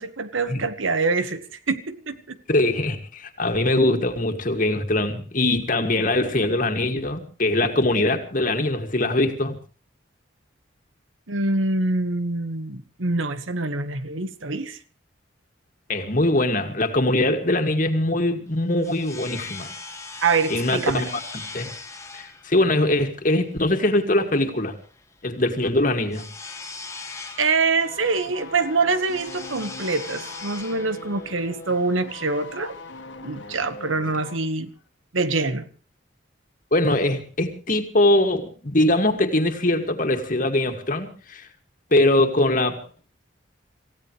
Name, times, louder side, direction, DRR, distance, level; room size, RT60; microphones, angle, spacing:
voice 1, 0.0-2.4 11.3-14.8 20.2-21.1 27.4-32.7 33.2-34.7 35.1-35.7, right 3 dB, 85° right, 1.4 m, -25 dB
voice 2, 2.5-9.6 15.9-19.7 20.5-21.1 21.3-21.7 22.1-24.8 25.2-26.2 36.7-41.5 41.9-42.8, left 1 dB, 45° left, 2.2 m, -22 dB
sound 1, 18.5-33.0, left 3 dB, 15° left, 1.5 m, -40 dB
sound 2, 27.8-34.5 34.7-34.9, left 3 dB, 70° left, 2.0 m, -41 dB
27.0 x 16.0 x 3.3 m
head